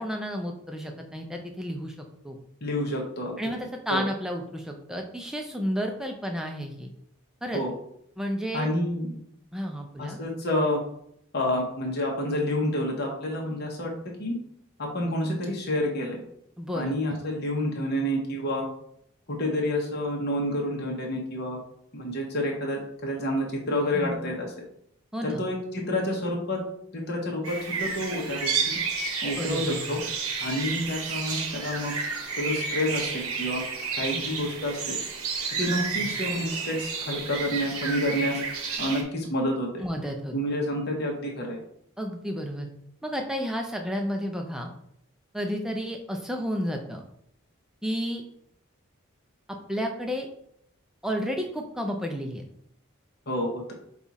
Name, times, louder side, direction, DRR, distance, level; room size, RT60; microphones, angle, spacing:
voice 1, 0.0-1.9 2.2-2.4 3.4-6.9 7.4-7.6 8.2-8.7 9.5-10.2 16.6-17.0 23.9-24.4 25.1-25.4 29.4-29.9 34.1-34.5 39.8-40.3 42.0-42.7 43.0-44.7 45.3-47.0 47.8-48.2 49.7-50.3 51.0-52.4, equal, ahead, 2 dB, 0.4 m, -31 dB
voice 2, 2.6-3.4 3.9-4.0 7.5-7.7 8.5-9.2 10.0-10.8 11.3-13.9 14.2-14.4 14.8-16.2 16.7-18.7 19.3-21.6 21.9-24.5 25.2-26.6 26.9-28.8 29.2-30.0 30.4-31.9 32.4-33.6 34.0-35.0 35.6-38.4 38.8-39.8 40.3-41.6 53.3-53.7, left 1 dB, 45° left, -1 dB, 0.9 m, -29 dB
sound 1, 27.4-39.0, right 5 dB, 80° right, 0.9 m, -31 dB
5.4 x 2.4 x 4.1 m, 0.72 s
head